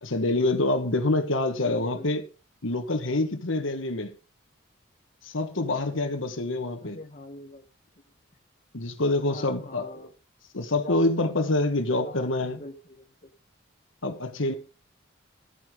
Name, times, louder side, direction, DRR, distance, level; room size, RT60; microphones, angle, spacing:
voice 1, 0.0-2.2 2.6-4.1 5.2-7.0 8.7-10.1 10.5-12.6 14.0-14.5, left 2 dB, 80° left, 1.4 m, -26 dB
voice 2, 1.6-2.2 6.8-7.6 9.3-10.1 10.7-11.1 11.7-13.3, left 1 dB, 35° left, 1.1 m, -43 dB
13.0 x 9.6 x 3.8 m
head